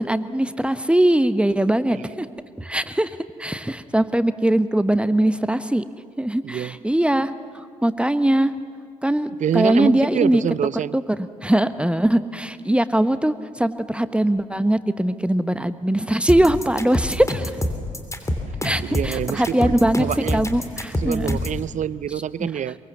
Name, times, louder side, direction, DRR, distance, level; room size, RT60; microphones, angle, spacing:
voice 1, 0.0-2.3 2.6-3.1 3.4-5.8 6.2-7.3 7.8-8.5 9.0-10.4 10.9-17.5 18.6-20.0 20.3-21.4 22.4-22.5, right 1 dB, 5° right, 12 dB, 1.1 m, -21 dB
voice 2, 6.4-6.8 9.4-11.0 18.8-20.4 20.9-22.8, right 9 dB, 50° right, 19 dB, 0.6 m, -26 dB
sound 1, 16.3-21.6, left 1 dB, 20° left, 3.1 m, -26 dB
23.0 x 22.5 x 7.2 m, 2.2 s
hypercardioid pair, 45°, 17 cm